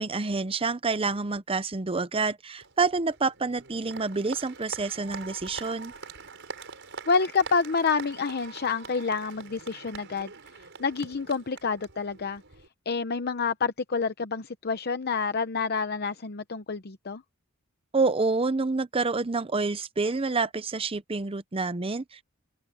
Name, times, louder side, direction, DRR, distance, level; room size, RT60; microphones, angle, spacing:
voice 1, 0.0-5.9 17.9-22.2, right 3 dB, 25° right, 0.7 m, -28 dB
Applause, 2.6-12.7, right 4 dB, 60° right, 6.4 m, -44 dB
voice 2, 7.1-10.3 10.8-12.4 12.9-17.2, left 5 dB, 50° left, 0.8 m, -28 dB
open air
head